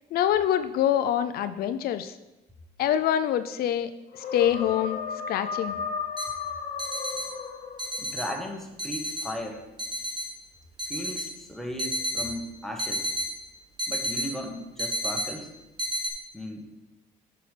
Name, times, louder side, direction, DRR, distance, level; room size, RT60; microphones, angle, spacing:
voice 1, 0.1-2.1 2.8-5.0 5.3-5.8, left 10 dB, 65° left, 11 dB, 0.4 m, -25 dB
sound 1, 4.1-8.2, left 5 dB, 50° left, 0.9 m, -34 dB
sound 2, 6.2-6.3 6.8-7.3 7.8-8.3 8.8-9.3 9.8-10.3 10.8-11.3 11.8-12.3 12.8-13.3 13.8-14.3 14.8-15.3 15.8-16.1, right 1 dB, 25° right, 1.5 m, -30 dB
voice 2, 8.0-9.6 10.9-13.1 13.9-15.5 16.3-16.7, equal, ahead, 1 dB, 1.2 m, -36 dB
7.8 x 6.6 x 3.3 m, 1.0 s
cardioid pair, 110°, 17 cm